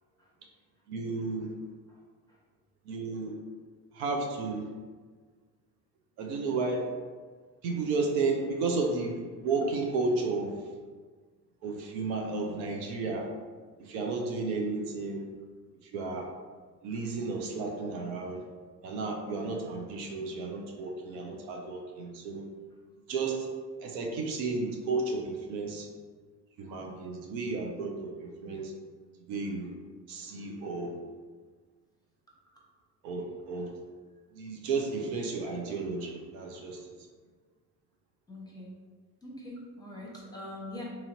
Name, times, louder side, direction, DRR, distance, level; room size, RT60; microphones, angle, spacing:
voice 1, 0.9-1.5 2.9-3.3 3.9-4.7 6.2-6.9 7.6-10.5 11.6-13.3 13.8-15.2 15.8-16.3 16.8-18.4 18.8-22.4 23.1-23.5 23.8-25.9 26.6-28.7 29.3-29.7 30.1-30.9 33.0-33.7 34.3-36.8, right 3 dB, 65° right, 1 dB, 0.6 m, -32 dB
voice 2, 38.3-38.7 39.2-40.8, left 1 dB, 10° left, -4 dB, 0.9 m, -42 dB
2.9 x 2.7 x 2.6 m, 1.5 s
hypercardioid pair, 55°, 46 cm